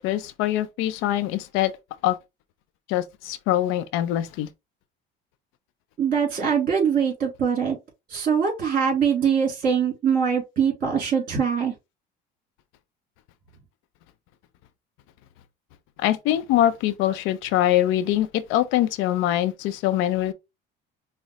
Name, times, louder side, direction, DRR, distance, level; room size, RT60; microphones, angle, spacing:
voice 1, 0.0-1.7 2.0-2.2 2.9-4.5 16.0-20.3, left 13 dB, 75° left, 0.5 m, -23 dB
voice 2, 6.0-7.8 8.1-11.7, right 7 dB, 45° right, 2.5 m, -23 dB
5.5 x 2.0 x 3.0 m
cardioid pair, 110°, 21 cm